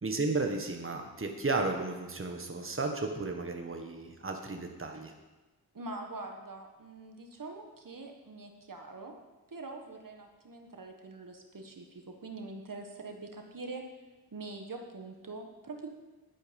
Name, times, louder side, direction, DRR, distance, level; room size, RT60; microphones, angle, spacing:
voice 1, 0.0-5.1, right 3 dB, 35° right, 3 dB, 1.5 m, -33 dB
voice 2, 5.7-9.2 9.5-13.8 14.3-15.9, right 3 dB, 55° right, 3 dB, 1.6 m, -44 dB
11.5 x 9.5 x 5.3 m, 1.2 s
cardioid pair, 50°, 38 cm